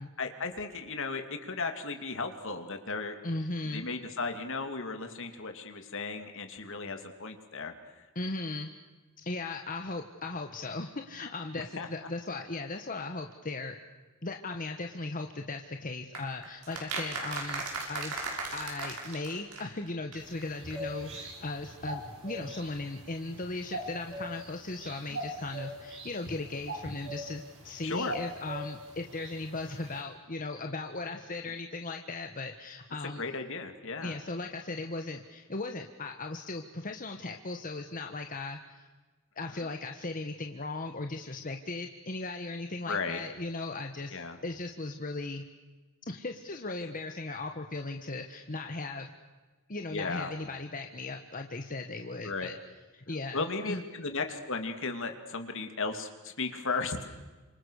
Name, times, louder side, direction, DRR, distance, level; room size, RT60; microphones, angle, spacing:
voice 1, 0.2-3.2 3.7-8.0 11.8-11.9 25.0-25.2 27.8-28.1 33.2-34.2 42.9-43.2 44.1-44.4 49.9-50.3 52.2-52.5 53.3-57.1, left 4 dB, 60° left, 6 dB, 2.8 m, -35 dB
voice 2, 3.2-3.8 8.1-8.7 9.2-13.8 14.2-17.6 17.9-33.2 34.0-38.9 39.4-45.5 46.1-49.1 49.7-52.5 52.9-53.8, left 2 dB, 40° left, 5 dB, 1.4 m, -37 dB
sound 1, 16.1-19.9 20.1-20.2 20.4-20.5 20.7-20.8, right 3 dB, 90° right, 6.6 m, -37 dB
sound 2, 20.2-30.0, right 1 dB, 60° right, 6.6 m, -42 dB
29.5 x 26.5 x 6.6 m, 1.3 s
head